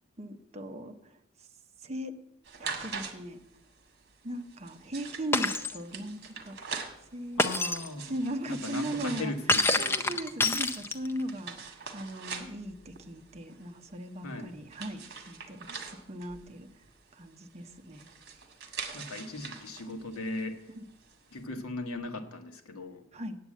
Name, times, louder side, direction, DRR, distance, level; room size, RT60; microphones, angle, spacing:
voice 1, 0.2-1.2 1.8-2.1 2.6-3.4 4.2-6.6 7.1-7.5 8.1-9.3 9.8-16.7 17.1-18.1 23.1-23.4, right 1 dB, 30° right, 5 dB, 0.7 m, -38 dB
sound 1, 2.4-21.4, right 5 dB, 45° right, 1.5 m, -44 dB
Shatter, 5.3-5.8 7.4-7.9 9.5-11.2, left 2 dB, 10° left, 0.4 m, -27 dB
voice 2, 7.4-8.2 8.5-10.2 14.2-14.6 18.9-20.7 21.3-23.0, left 2 dB, 80° left, 6 dB, 1.3 m, -38 dB
8.6 x 8.2 x 8.4 m, 0.87 s
head